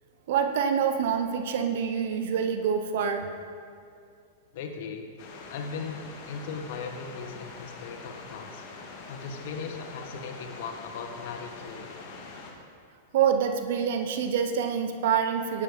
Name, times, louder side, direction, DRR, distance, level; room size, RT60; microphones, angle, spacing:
voice 1, 0.3-3.3 13.1-15.6, right 7 dB, 65° right, 7 dB, 0.9 m, -26 dB
voice 2, 4.5-5.1 5.5-8.6 9.1-11.9, left 5 dB, 65° left, 4 dB, 1.5 m, -38 dB
sound 1, 5.2-12.5, left 4 dB, 45° left, 2.3 m, -44 dB
11.5 x 8.8 x 5.2 m, 2.3 s
hypercardioid pair, 120°, 0 cm